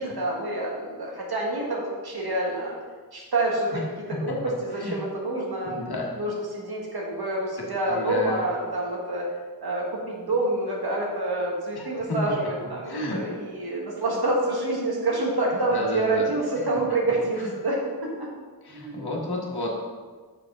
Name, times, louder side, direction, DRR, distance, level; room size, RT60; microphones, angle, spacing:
voice 1, 0.0-2.7 3.1-5.8 6.1-9.3 9.6-18.3 18.7-19.1, right 2 dB, 70° right, -3 dB, 1.6 m, -27 dB
voice 2, 5.6-6.1 7.9-8.4 11.8-12.2 12.9-13.2 15.7-16.3 18.6-19.7, left 2 dB, 70° left, -1 dB, 1.3 m, -31 dB
6.2 x 5.2 x 3.6 m, 1.4 s
wide cardioid pair, 55°, 39 cm